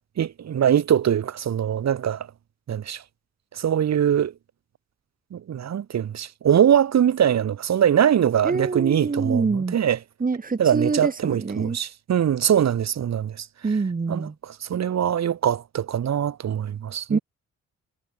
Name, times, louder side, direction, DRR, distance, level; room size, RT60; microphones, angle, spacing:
voice 1, 0.2-2.3 2.7-3.0 3.5-4.3 5.3-10.0 10.6-13.5 14.1-17.2, right 9 dB, 60° right, 6.3 m, -22 dB
voice 2, 8.4-9.8 10.2-11.8 13.6-14.3 17.1-17.2, right 4 dB, 30° right, 4.1 m, -25 dB
cardioid pair, 90°, 30 cm